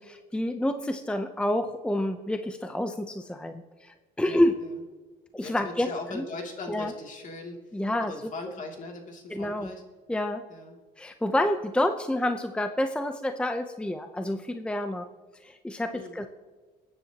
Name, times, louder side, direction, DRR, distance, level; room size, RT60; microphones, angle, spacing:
voice 1, 0.0-3.5 3.8-4.5 5.3-6.2 6.7-6.9 7.7-8.1 9.3-9.7 10.1-10.4 11.0-15.1 15.4-16.3, left 1 dB, 5° left, 7 dB, 0.6 m, -28 dB
voice 2, 4.2-4.8 5.4-9.8 10.5-10.8 15.9-16.2, left 2 dB, 50° left, 1 dB, 2.8 m, -40 dB
21.5 x 9.7 x 2.9 m, 1.4 s
cardioid pair, 110°, 17 cm